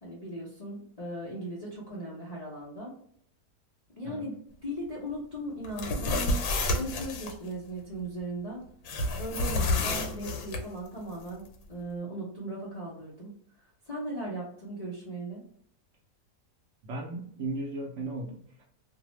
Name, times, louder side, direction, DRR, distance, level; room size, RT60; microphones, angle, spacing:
voice 1, 0.0-2.9 4.0-4.3 4.6-8.6 9.2-15.4, right 1 dB, 45° left, -6 dB, 0.5 m, -38 dB
sound 1, 5.6-7.3 8.9-10.6, left 2 dB, 90° left, 1.1 m, -29 dB
voice 2, 16.8-18.6, right 2 dB, 65° right, -1 dB, 0.7 m, -36 dB
2.6 x 2.0 x 3.0 m, 0.64 s
omnidirectional pair, 1.6 m